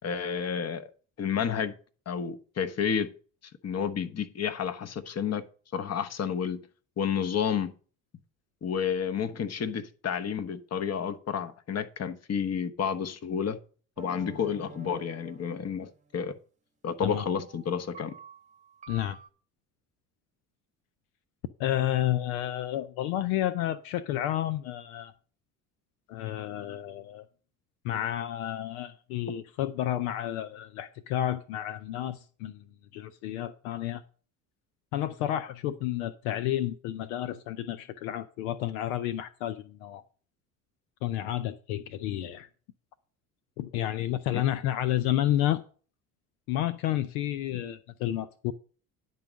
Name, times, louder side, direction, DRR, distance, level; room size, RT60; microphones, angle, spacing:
voice 1, 0.0-0.9 1.2-1.7 2.1-3.1 3.6-5.4 5.7-6.6 7.0-7.7 8.6-13.6 14.0-16.3 16.8-18.1 44.3-44.4, left 7 dB, 35° left, 1.2 m, -30 dB
sound 1, 14.0-16.3 17.1-19.3, right 5 dB, 15° right, 1.0 m, -48 dB
voice 2, 21.6-25.1 26.1-27.3 27.8-32.6 32.9-34.0 34.9-40.0 41.0-42.5 43.6-45.6 46.5-48.5, left 12 dB, 75° left, 0.7 m, -31 dB
10.5 x 4.0 x 7.4 m
hypercardioid pair, 65°, 43 cm